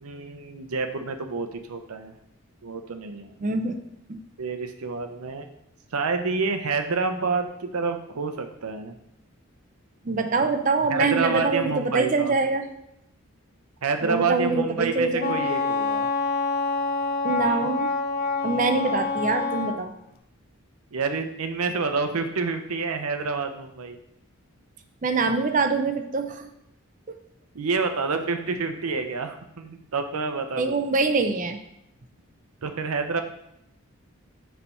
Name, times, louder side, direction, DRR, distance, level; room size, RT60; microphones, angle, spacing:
voice 1, 0.0-2.1 2.6-3.3 4.4-5.5 5.9-9.0 10.9-12.3 13.8-16.1 20.9-24.0 27.5-30.8 32.6-33.2, right 4 dB, 90° right, 7 dB, 0.7 m, -28 dB
voice 2, 3.4-3.8 4.1-4.2 10.0-12.6 14.0-15.5 17.2-17.9 18.4-19.9 25.0-26.5 27.1-27.2 30.6-31.6, right 3 dB, 35° right, 7 dB, 0.5 m, -24 dB
Wind instrument woodwind instrument, 15.2-19.8, left 4 dB, 45° left, 0.4 m, -26 dB
6.8 x 3.4 x 4.2 m, 0.81 s
head